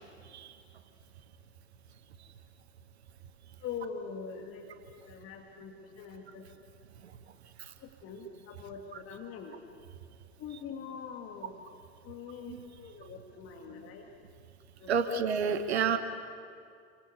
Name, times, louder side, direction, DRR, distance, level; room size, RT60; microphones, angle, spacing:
voice 1, 3.6-4.7 5.1-6.4 7.8-9.6 10.4-11.6 12.0-14.1 14.8-15.1 15.9-16.0, left 6 dB, 40° left, 3 dB, 2.3 m, -43 dB
voice 2, 14.9-16.0, right 6 dB, 70° right, 9 dB, 1.4 m, -29 dB
29.0 x 24.5 x 6.9 m, 2.3 s
figure-of-eight pair, 70°, 33 cm